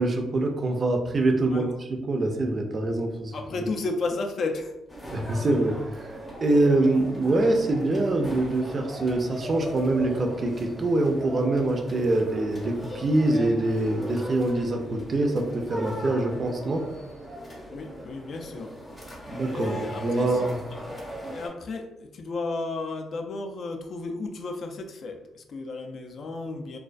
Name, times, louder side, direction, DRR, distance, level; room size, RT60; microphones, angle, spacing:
voice 1, 0.0-3.4 5.1-16.9 19.3-20.6, right 2 dB, 40° right, 4 dB, 0.4 m, -25 dB
voice 2, 3.3-4.7 17.7-18.7 19.5-20.5 21.3-26.8, left 3 dB, 55° left, 4 dB, 0.3 m, -33 dB
sound 1, 4.9-21.5, equal, 20° left, 0.7 m, -39 dB
2.3 x 2.2 x 2.4 m, 0.91 s
cardioid pair, 90°, 0 cm